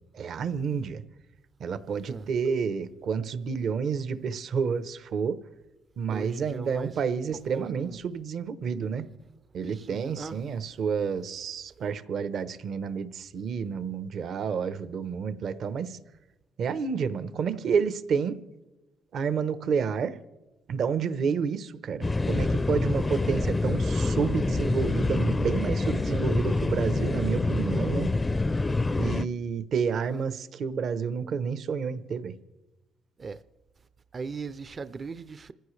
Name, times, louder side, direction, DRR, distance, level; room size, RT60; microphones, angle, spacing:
voice 1, 0.1-1.0 1.6-5.4 6.0-9.1 9.5-16.0 16.6-18.4 19.1-20.2 20.7-28.1 29.0-32.3, right 6 dB, 65° right, 0.8 m, -29 dB
voice 2, 6.1-6.9 7.5-8.0 9.7-10.4 29.9-30.2 33.2-33.4 34.1-35.5, right 4 dB, 40° right, 0.5 m, -38 dB
sound 1, 22.0-29.3, left 2 dB, 20° left, 0.5 m, -26 dB
27.0 x 15.0 x 3.2 m
cardioid pair, 90°, 0 cm